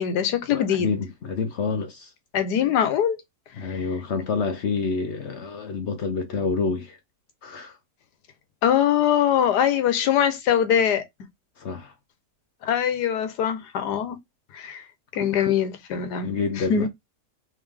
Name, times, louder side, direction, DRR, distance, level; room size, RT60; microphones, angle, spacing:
voice 1, 0.0-0.9 2.3-3.2 8.6-11.0 12.6-14.2 14.5-14.8 15.1-16.3 16.7-16.9, left 9 dB, 90° left, 1.4 m, -22 dB
voice 2, 0.5-2.1 3.5-7.0 7.4-7.8 11.6-11.9 15.2-15.5 16.2-16.9, left 4 dB, 55° left, 0.8 m, -28 dB
3.5 x 3.2 x 3.5 m
omnidirectional pair, 1.7 m